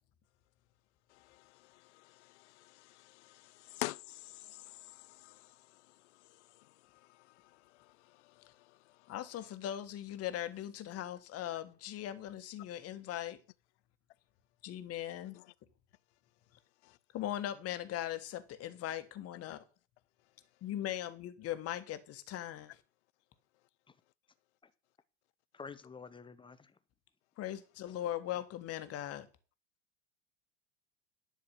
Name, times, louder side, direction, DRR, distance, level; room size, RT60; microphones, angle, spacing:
voice 1, 1.7-5.5 15.3-15.4, left 19 dB, 60° left, 0.5 m, -45 dB
voice 2, 9.1-13.4 14.6-15.4 17.1-19.6 20.6-22.8 27.4-29.3, left 12 dB, 40° left, 1.4 m, -39 dB
voice 3, 25.5-26.8, left 5 dB, 15° left, 0.8 m, -49 dB
11.0 x 4.9 x 7.4 m
figure-of-eight pair, 80°, 38 cm